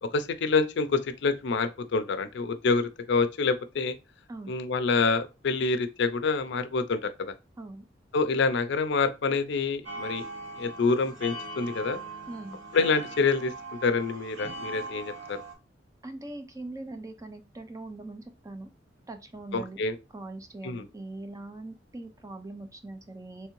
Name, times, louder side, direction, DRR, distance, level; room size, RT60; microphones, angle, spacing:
voice 1, 0.0-4.0 4.5-7.3 8.1-10.2 10.6-12.0 12.7-13.5 13.8-15.4 19.5-19.9 20.6-20.8, left 4 dB, 70° left, 0.5 m, -27 dB
sound 1, 9.8-15.5, right 2 dB, 80° right, 1.3 m, -40 dB
voice 2, 12.3-12.6 16.0-18.7 19.1-19.8 20.1-23.5, right 2 dB, 20° right, 0.5 m, -41 dB
3.5 x 3.2 x 3.0 m
head